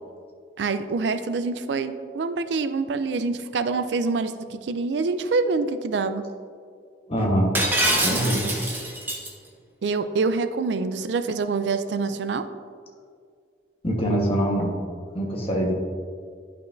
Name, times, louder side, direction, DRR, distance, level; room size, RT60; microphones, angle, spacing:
voice 1, 0.6-6.3 9.8-12.5, right 4 dB, 80° right, 11 dB, 0.4 m, -26 dB
voice 2, 7.1-7.5 8.0-8.4 13.8-14.8 15.1-15.7, right 1 dB, 30° left, -1 dB, 1.2 m, -23 dB
Shatter, 7.5-9.3, right 1 dB, 10° right, 0.9 m, -24 dB
11.0 x 5.5 x 2.6 m, 2.1 s
head